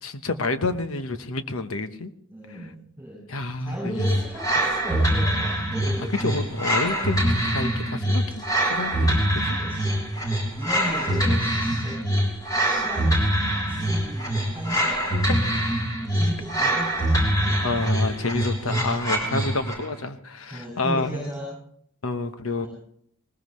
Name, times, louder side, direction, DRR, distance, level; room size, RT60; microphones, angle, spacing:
voice 1, 0.0-2.1 2.5-2.7 3.3-4.1 6.2-9.6 17.6-21.3 22.0-22.7, left 3 dB, 80° left, 9 dB, 1.1 m, -29 dB
voice 2, 2.3-3.2 3.6-6.3 9.6-10.0 10.6-12.0 12.6-13.2 13.7-15.0 16.1-17.6 19.4-19.5 20.5-21.5 22.6-22.7, equal, 10° right, -3 dB, 5.9 m, -35 dB
sound 1, 4.0-19.9, right 1 dB, 15° left, 3.4 m, -24 dB
20.5 x 19.0 x 3.2 m, 0.70 s
head